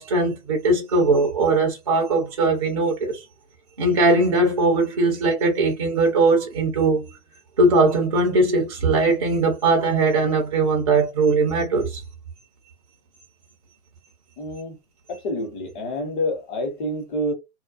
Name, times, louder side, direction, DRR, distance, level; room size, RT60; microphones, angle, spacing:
voice 1, 0.0-3.2 3.8-7.1 7.6-12.0, right 3 dB, 25° right, 0.4 m, -20 dB
voice 2, 14.4-14.8 15.1-17.3, left 1 dB, 35° left, 1.0 m, -28 dB
2.3 x 2.3 x 2.3 m
hypercardioid pair, 140°, 44 cm